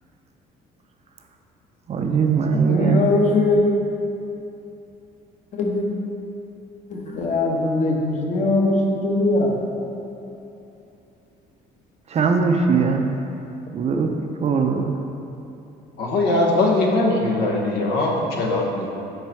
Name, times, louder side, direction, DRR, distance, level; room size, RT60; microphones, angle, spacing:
voice 1, 1.9-3.2 12.1-13.1 13.7-15.0, right 5 dB, 40° right, 3 dB, 0.5 m, -20 dB
voice 2, 2.5-3.7 5.5-5.9 6.9-9.6, left 2 dB, 45° left, -1 dB, 1.0 m, -21 dB
voice 3, 16.0-18.9, left 2 dB, 80° left, -1 dB, 1.0 m, -21 dB
4.6 x 4.5 x 5.5 m, 2.8 s
cardioid pair, 110°, 17 cm